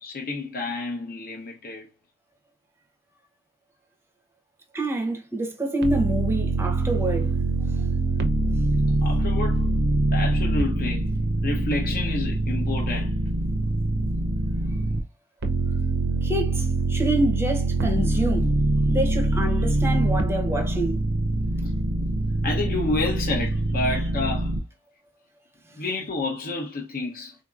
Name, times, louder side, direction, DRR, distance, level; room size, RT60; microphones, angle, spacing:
voice 1, 0.0-1.9 9.0-9.7 10.1-11.1 11.4-13.2 21.6-21.7 22.4-24.6 25.8-27.4, left 2 dB, 45° left, 0.7 m, -29 dB
voice 2, 4.7-7.3 16.2-18.6 18.9-21.0 25.7-25.8, right 1 dB, 10° right, 0.7 m, -27 dB
sound 1, 5.8-15.0 15.4-24.6, right 2 dB, 55° right, 0.6 m, -24 dB
3.8 x 2.8 x 2.4 m
head